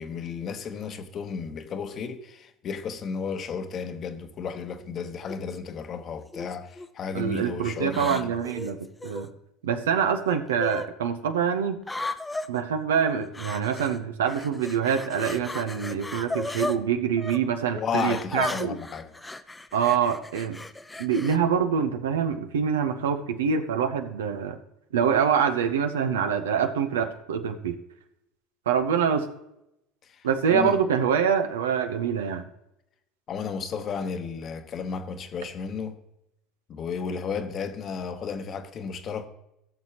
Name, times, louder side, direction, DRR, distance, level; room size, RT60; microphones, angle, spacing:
voice 1, 0.0-8.3 17.7-19.1 30.1-30.2 30.5-30.8 33.3-36.0 36.7-39.3, left 6 dB, 45° left, 1.1 m, -33 dB
sound 1, 5.3-5.6 6.3-6.9 7.9-9.3 10.3-10.9 11.8-12.5 13.3-14.0 14.2-16.8 17.2-17.4 17.9-21.4, left 2 dB, 10° left, 0.7 m, -35 dB
voice 2, 7.1-8.8 9.0-9.3 9.6-11.8 12.5-18.8 19.7-20.6 21.0-24.6 24.9-27.8 28.7-29.3 30.2-32.4, right 7 dB, 80° right, 0.9 m, -25 dB
16.5 x 6.7 x 3.0 m
hypercardioid pair, 70°, 0 cm